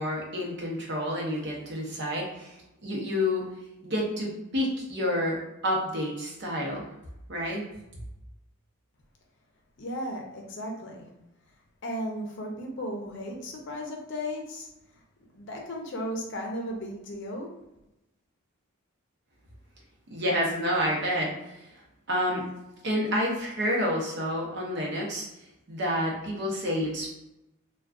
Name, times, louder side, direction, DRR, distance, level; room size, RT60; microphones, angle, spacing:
voice 1, 0.0-2.5 2.8-3.4 3.8-5.4 5.6-6.8 7.3-7.6 20.1-21.3 22.1-22.4 22.8-25.2 25.7-27.1, equal, 55° right, -2 dB, 0.7 m, -29 dB
voice 2, 9.8-11.1 11.8-14.7 15.3-17.5, equal, 55° left, 1 dB, 0.6 m, -35 dB
2.4 x 2.2 x 3.5 m, 0.91 s
head